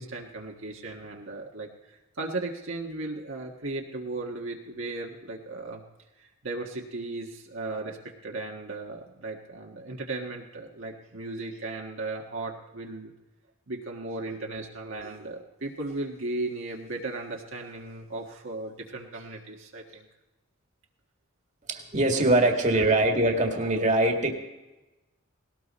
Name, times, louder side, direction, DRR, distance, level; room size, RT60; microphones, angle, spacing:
voice 1, 0.0-5.8 6.2-8.0 8.2-13.1 13.7-20.0 22.7-22.8, right 2 dB, 65° right, 0 dB, 1.5 m, -36 dB
voice 2, 21.7-24.3, right 2 dB, 35° right, 3 dB, 1.8 m, -23 dB
19.0 x 18.0 x 4.2 m, 1.1 s
head